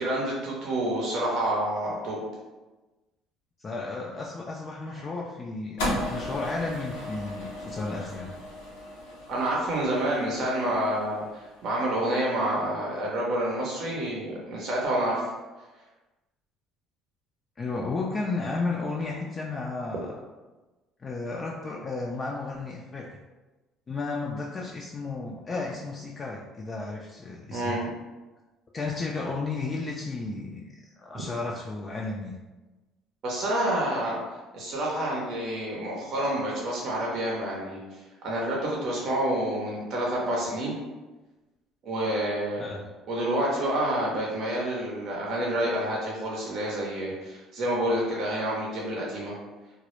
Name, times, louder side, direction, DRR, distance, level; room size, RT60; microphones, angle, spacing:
voice 1, 0.0-2.2 4.9-5.0 9.3-15.2 27.5-27.8 31.1-31.2 33.2-34.2 34.5-37.8 38.2-40.7 41.8-42.6 43.1-49.3, right 1 dB, 60° right, -3 dB, 0.6 m, -28 dB
voice 2, 3.6-8.3 17.6-20.1 21.0-23.1 23.9-27.8 28.7-30.6 31.0-32.3 42.6-42.8, left 3 dB, 35° left, -3 dB, 0.3 m, -33 dB
sound 1, 5.8-12.1, left 1 dB, 90° left, 0.6 m, -36 dB
2.0 x 2.0 x 3.0 m, 1.2 s
supercardioid pair, 75°, 0 cm